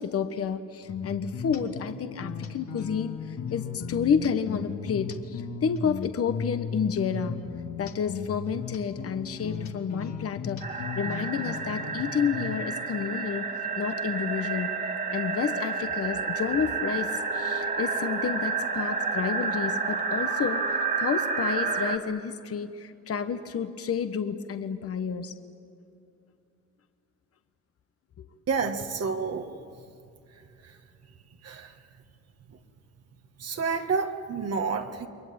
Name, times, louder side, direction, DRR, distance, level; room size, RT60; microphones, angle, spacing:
voice 1, 0.0-7.4 7.8-10.6 11.0-14.8 15.1-25.3 28.2-28.3, left 6 dB, 50° left, 9 dB, 1.3 m, -30 dB
sound 1, 0.9-12.6, left 6 dB, 65° left, 2.2 m, -36 dB
sound 2, 10.6-22.0, right 4 dB, 30° right, 2.4 m, -30 dB
voice 2, 28.5-29.5 31.4-31.7 33.4-35.1, right 5 dB, 55° right, 5 dB, 2.0 m, -29 dB
29.0 x 23.0 x 8.8 m, 2.6 s
cardioid pair, 90°, 30 cm